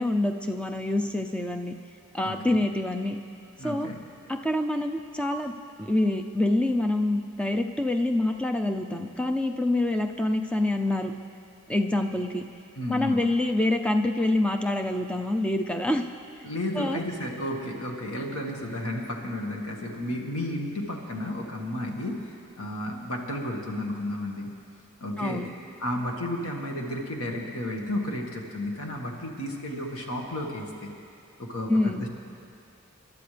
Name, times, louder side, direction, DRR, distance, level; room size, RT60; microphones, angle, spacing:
voice 1, 0.0-1.7 2.1-3.2 3.6-3.9 4.3-5.5 5.8-11.1 11.7-12.4 12.9-16.0 16.8-17.0 25.2-25.5 31.7-32.0, left 1 dB, 5° left, 4 dB, 0.5 m, -26 dB
voice 2, 2.2-2.6 3.6-4.0 12.7-13.2 16.4-24.5 25.0-25.5 25.8-30.9 31.4-32.1, left 1 dB, 80° left, 0 dB, 1.8 m, -32 dB
26.5 x 11.5 x 3.4 m, 2.5 s
head